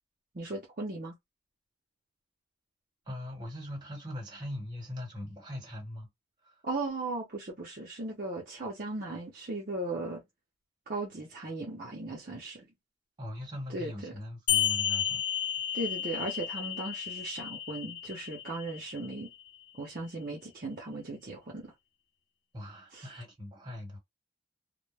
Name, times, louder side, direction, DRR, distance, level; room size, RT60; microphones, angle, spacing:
voice 1, 0.3-1.1 6.6-10.2 10.9-12.7 13.7-14.1 15.7-19.3 19.8-21.7 22.9-23.1, right 2 dB, 45° right, 0.6 m, -37 dB
voice 2, 3.1-6.1 6.4-6.6 13.2-15.2 22.5-24.0, left 1 dB, 25° right, 1.3 m, -41 dB
sound 1, 14.5-19.5, left 10 dB, 65° left, 0.7 m, -32 dB
2.1 x 2.1 x 3.2 m
head